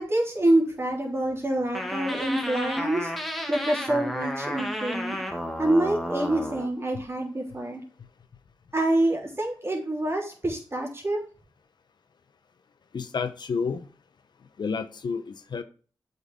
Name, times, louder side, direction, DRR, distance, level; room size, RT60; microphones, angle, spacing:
voice 1, 0.0-3.1 3.5-5.2 5.6-7.8 8.7-11.2, right 1 dB, 35° right, -1 dB, 3.6 m, -26 dB
sound 1, 1.7-6.7, equal, ahead, 1.7 m, -32 dB
voice 2, 12.9-13.8 14.6-15.6, left 5 dB, 70° left, 10 dB, 0.8 m, -30 dB
8.1 x 5.5 x 3.6 m, 0.38 s
cardioid pair, 55°, 8 cm